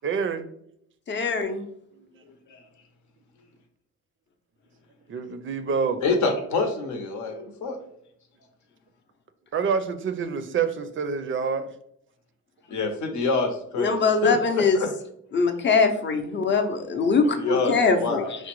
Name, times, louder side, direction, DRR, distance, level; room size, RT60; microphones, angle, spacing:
voice 1, 0.0-0.5 1.9-2.2 5.1-6.0 9.5-11.7, right 6 dB, 40° right, 10 dB, 0.4 m, -27 dB
voice 2, 1.1-1.6 13.8-14.8 15.3-18.2, left 4 dB, 40° left, 5 dB, 0.6 m, -22 dB
voice 3, 6.0-7.8 12.7-14.9 17.4-18.3, left 3 dB, 70° left, 4 dB, 0.8 m, -26 dB
4.8 x 2.1 x 3.0 m, 0.71 s
cardioid pair, 90°, 30 cm